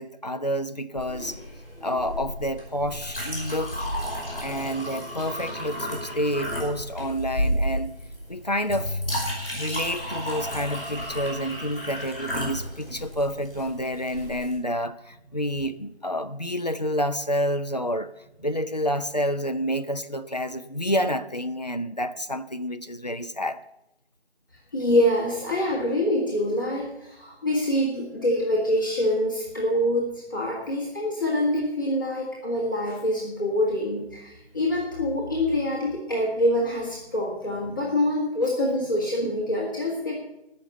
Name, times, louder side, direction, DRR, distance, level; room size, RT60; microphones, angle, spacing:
voice 1, 0.0-1.4 1.8-3.8 4.4-7.9 8.3-9.0 9.5-18.1 18.4-23.6 38.4-38.5, equal, 40° left, 0.5 m, -29 dB
Chink clink, 0.9-14.5, equal, ahead, 3.9 m, -32 dB
voice 2, 24.7-40.2, left 1 dB, 20° left, 2.0 m, -25 dB
16.0 x 6.5 x 8.0 m
figure-of-eight pair, 170°, 33 cm